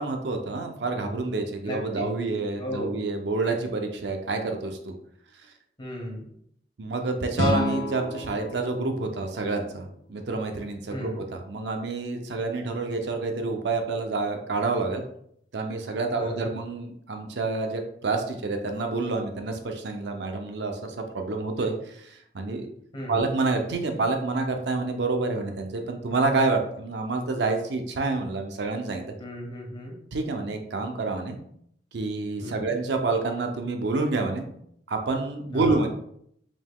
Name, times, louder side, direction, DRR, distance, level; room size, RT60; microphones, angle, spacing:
voice 1, 0.0-4.9 6.8-15.0 15.5-22.7 23.1-29.1 30.1-31.4 31.9-34.5 34.9-35.9, right 3 dB, 70° right, 4 dB, 0.5 m, -28 dB
voice 2, 2.6-2.9 5.8-6.3 10.9-11.2 16.1-16.5 22.9-23.3 29.2-30.0 32.4-32.7 35.5-35.8, equal, 30° left, -1 dB, 1.1 m, -35 dB
sound 1, 7.3-10.4, left 1 dB, 85° left, 0.9 m, -31 dB
4.9 x 3.7 x 2.2 m, 0.70 s
head